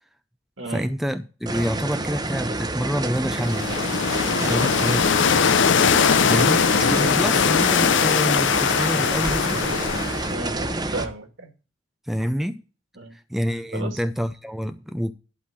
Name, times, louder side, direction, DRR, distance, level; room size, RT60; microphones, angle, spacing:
voice 1, 0.7-3.7 4.4-5.1 6.3-9.6 12.1-12.6 13.1-15.1, equal, ahead, 0.4 m, -27 dB
sound 1, 1.5-11.1, right 2 dB, 20° right, 0.8 m, -28 dB
sound 2, 3.3-10.4, left 7 dB, 65° left, 0.5 m, -21 dB
voice 2, 10.3-11.5 13.0-13.1 13.7-14.0, right 2 dB, 70° right, 2.1 m, -33 dB
11.5 x 3.9 x 7.3 m
head